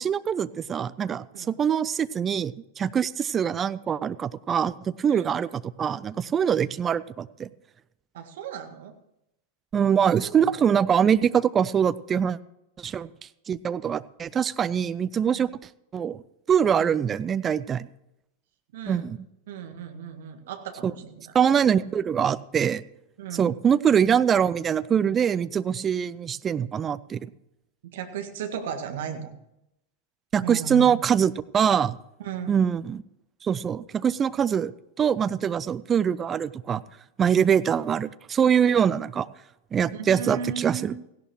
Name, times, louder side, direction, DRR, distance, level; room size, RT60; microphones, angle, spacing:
voice 1, 0.0-7.5 9.7-12.4 12.8-13.1 13.5-15.5 15.9-16.2 16.5-17.9 18.9-19.2 20.8-20.9 21.3-22.8 23.3-27.3 30.3-32.0 32.5-33.0 33.4-34.7 35.0-36.8 37.2-39.3 39.7-40.9, right 8 dB, 25° right, 15 dB, 0.5 m, -23 dB
voice 2, 8.1-8.9 10.2-10.6 15.3-15.5 16.8-16.9 18.7-19.1 19.5-21.3 23.2-23.6 27.8-29.4 30.4-30.9 32.2-32.6 39.9-41.0, right 7 dB, 55° right, 5 dB, 1.7 m, -36 dB
17.5 x 16.0 x 3.0 m, 0.84 s
figure-of-eight pair, 90°, 0 cm